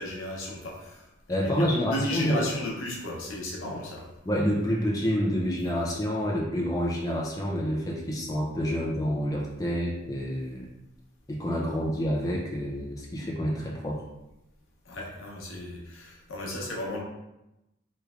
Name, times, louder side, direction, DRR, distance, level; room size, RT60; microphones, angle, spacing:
voice 1, 0.0-4.0 14.8-17.0, left 1 dB, 80° left, -2 dB, 0.8 m, -34 dB
voice 2, 1.3-2.4 4.3-10.7 11.3-14.0, equal, 15° left, -3 dB, 0.4 m, -28 dB
3.1 x 3.1 x 2.4 m, 0.94 s
head